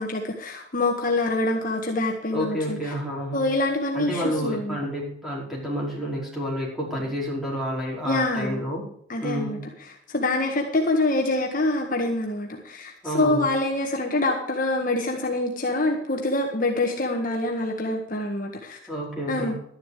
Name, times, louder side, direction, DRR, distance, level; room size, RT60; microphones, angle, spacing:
voice 1, 0.0-2.8 3.3-4.8 8.0-8.6 9.1-9.6 10.1-18.8 19.3-19.6, left 2 dB, 45° left, 1 dB, 1.7 m, -25 dB
voice 2, 2.3-3.5 3.9-8.9 9.2-9.6 13.0-13.5 18.9-19.6, equal, ahead, -4 dB, 5.0 m, -29 dB
12.5 x 11.0 x 5.0 m, 0.68 s
head